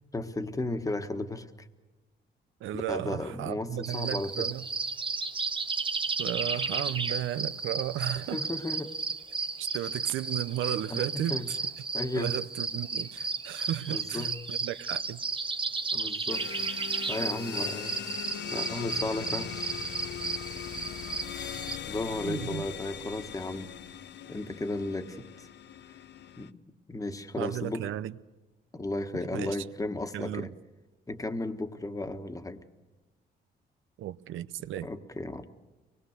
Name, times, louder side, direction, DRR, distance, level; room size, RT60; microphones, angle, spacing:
voice 1, 0.1-1.7 2.7-4.5 8.3-8.9 10.9-11.5 11.9-12.3 13.9-14.4 15.9-16.5 17.1-18.0 18.5-19.8 21.9-23.7 24.3-25.5 26.4-26.6 26.9-27.9 28.7-30.5 31.1-32.6 34.8-35.5, left 2 dB, 15° left, 1.4 m, -34 dB
voice 2, 2.6-4.6 6.2-8.4 9.6-11.6 12.2-15.2 22.2-22.6 27.4-28.2 29.3-29.6 30.1-30.5 34.0-34.9, right 13 dB, 80° right, 0.7 m, -34 dB
sound 1, 3.8-21.8, right 4 dB, 25° right, 0.9 m, -34 dB
sound 2, 16.3-26.5, left 9 dB, 60° left, 0.7 m, -40 dB
24.0 x 20.5 x 6.6 m
cardioid pair, 90°, 20 cm